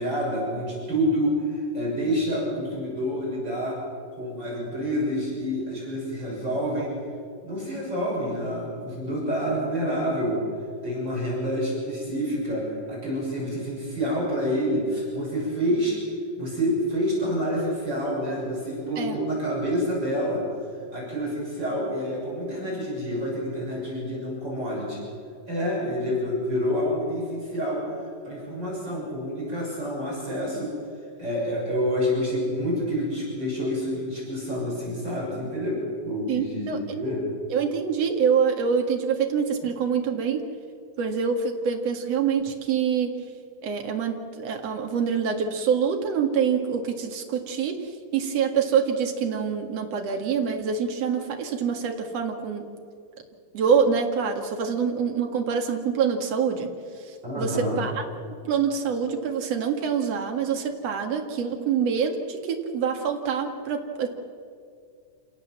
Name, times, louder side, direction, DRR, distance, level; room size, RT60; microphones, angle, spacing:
voice 1, 0.0-3.8 4.1-6.9 7.4-10.4 10.8-16.0 16.4-20.4 20.9-25.0 25.5-30.7 31.2-37.2 57.2-57.8, equal, 30° right, -5 dB, 7.1 m, -28 dB
voice 2, 36.3-36.8 37.5-40.4 41.0-43.1 43.6-52.7 53.5-56.7 57.1-58.0 58.4-64.1, right 6 dB, 50° right, 3 dB, 2.9 m, -25 dB
28.0 x 17.5 x 7.5 m, 2.2 s
omnidirectional pair, 3.9 m